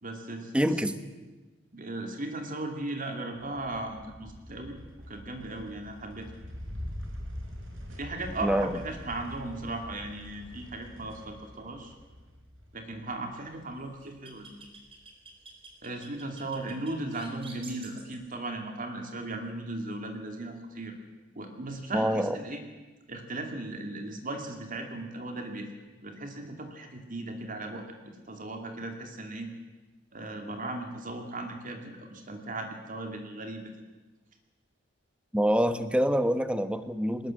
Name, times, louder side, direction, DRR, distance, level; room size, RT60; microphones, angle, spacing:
voice 1, 0.0-0.5 1.7-4.8 5.1-6.3 7.9-11.9 12.7-14.7 15.8-21.0 21.4-22.6 23.1-25.7 26.0-28.0 28.3-29.5 30.1-33.8, right 2 dB, 45° right, 4 dB, 2.6 m, -37 dB
voice 2, 0.5-0.9 8.4-8.8 21.9-22.4 35.3-37.3, equal, 5° right, 10 dB, 1.1 m, -26 dB
sound 1, 3.4-14.0, equal, 85° right, 5.6 m, -44 dB
sound 2, 13.3-18.4, right 3 dB, 30° right, 4.0 m, -51 dB
21.0 x 20.0 x 7.6 m, 1.2 s
head